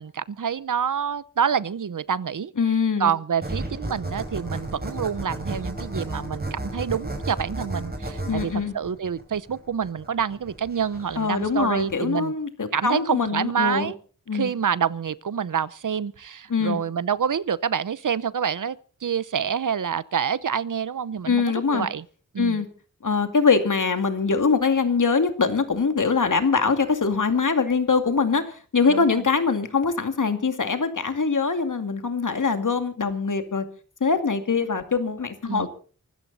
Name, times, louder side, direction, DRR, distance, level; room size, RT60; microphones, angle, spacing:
voice 1, 0.0-2.5 3.0-12.3 12.7-14.0 14.3-22.0 22.3-22.6 28.9-29.2 35.5-35.7, right 7 dB, 75° right, 0.8 m, -27 dB
voice 2, 2.6-3.1 8.3-8.7 11.2-13.9 14.3-14.5 16.5-16.8 21.3-21.9 22.4-22.7 23.0-33.7 34.0-35.7, left 5 dB, 70° left, 2.4 m, -23 dB
sound 1, 3.4-11.9, right 2 dB, 30° right, 6.0 m, -33 dB
24.0 x 13.5 x 4.1 m
wide cardioid pair, 65°, 32 cm